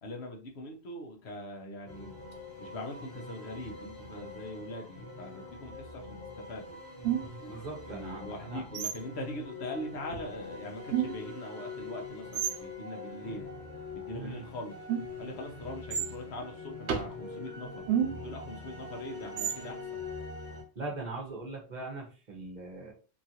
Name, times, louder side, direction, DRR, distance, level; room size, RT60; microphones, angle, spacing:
voice 1, 0.0-2.2 2.6-6.8 7.8-13.5 13.9-14.8 15.2-17.9 18.2-20.0, left 1 dB, 80° left, 2 dB, 1.1 m, -42 dB
sound 1, 1.9-20.6, left 3 dB, 50° left, 1.1 m, -44 dB
sound 2, 7.0-7.6 8.7-9.2 10.1-10.2 10.9-11.4 12.3-12.6 14.9-15.3 15.9-16.1 16.9-17.2 17.9-18.4 19.4-19.7, right 9 dB, 90° right, 0.9 m, -31 dB
voice 2, 7.5-8.6 14.1-14.4 20.8-22.9, right 3 dB, 45° right, 0 dB, 0.9 m, -40 dB
2.9 x 2.5 x 2.8 m, 0.36 s
omnidirectional pair, 1.1 m